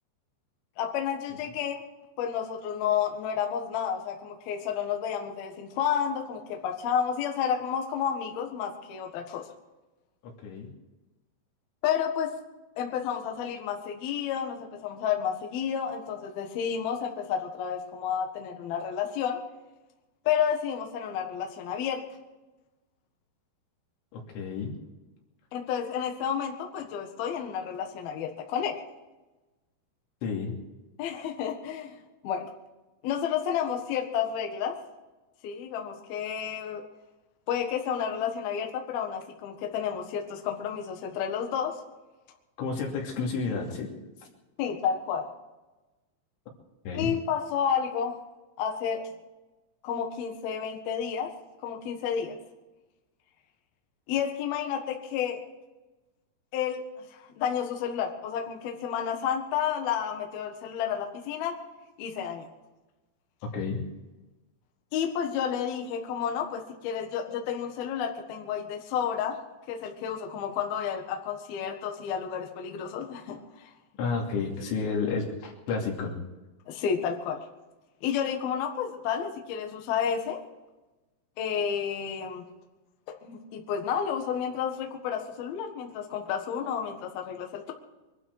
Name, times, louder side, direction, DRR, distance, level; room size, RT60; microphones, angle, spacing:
voice 1, 0.8-1.8 2.2-9.5 11.8-12.4 12.8-19.4 20.3-22.0 25.5-28.8 31.0-32.0 32.2-32.5 33.0-34.8 35.4-36.8 37.5-41.8 44.6-45.3 46.9-48.2 48.6-49.1 49.8-51.3 51.6-52.4 54.1-55.4 56.5-61.6 62.0-62.5 64.9-69.4 69.7-73.7 76.7-77.4 78.0-80.4 81.4-82.4 83.2-87.7, left 8 dB, 65° left, 3 dB, 3.1 m, -31 dB
voice 2, 10.2-10.7 24.1-24.8 30.2-30.5 42.6-43.9 46.9-47.1 63.5-63.8 67.3-67.4 74.0-76.2, left 4 dB, 85° left, 0 dB, 5.2 m, -31 dB
23.5 x 12.5 x 4.8 m, 1.1 s
omnidirectional pair, 5.4 m